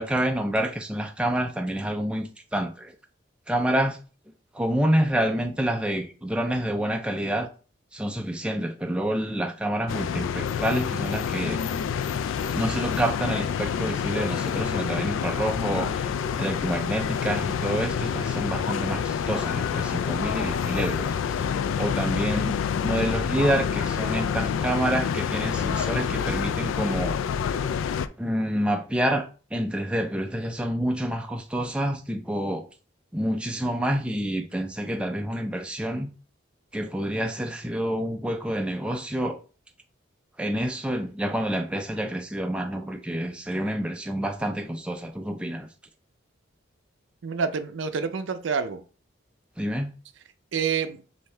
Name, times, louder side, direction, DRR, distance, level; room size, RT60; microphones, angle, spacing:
voice 1, 0.0-2.9 3.5-4.0 4.5-7.5 7.9-11.6 12.5-16.1 16.4-21.4 21.8-27.1 28.2-29.3 29.5-32.7 33.1-36.1 36.7-39.4 40.4-45.7 49.6-49.9, right 1 dB, 5° right, 0.3 m, -28 dB
sound 1, 9.9-28.1, left 7 dB, 80° left, 0.3 m, -27 dB
voice 2, 47.2-48.8 50.5-51.0, right 6 dB, 75° right, 0.5 m, -27 dB
5.4 x 2.6 x 3.3 m
head